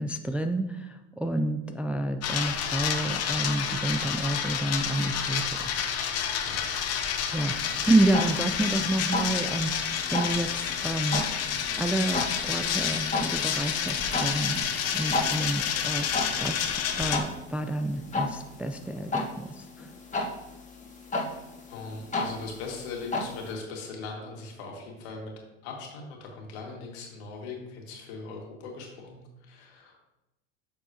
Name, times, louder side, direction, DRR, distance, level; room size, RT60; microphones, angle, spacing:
voice 1, 0.0-5.9 7.3-11.2 11.8-14.7 14.9-19.9, right 1 dB, 5° right, 6 dB, 0.3 m, -29 dB
sound 1, 2.2-17.2, left 8 dB, 45° left, 1.0 m, -29 dB
sound 2, 7.5-23.5, left 2 dB, 20° left, 1.6 m, -35 dB
voice 2, 21.7-25.3 25.6-30.0, left 4 dB, 70° left, 0 dB, 2.1 m, -40 dB
8.1 x 6.3 x 2.9 m, 0.96 s
hypercardioid pair, 75°, 35 cm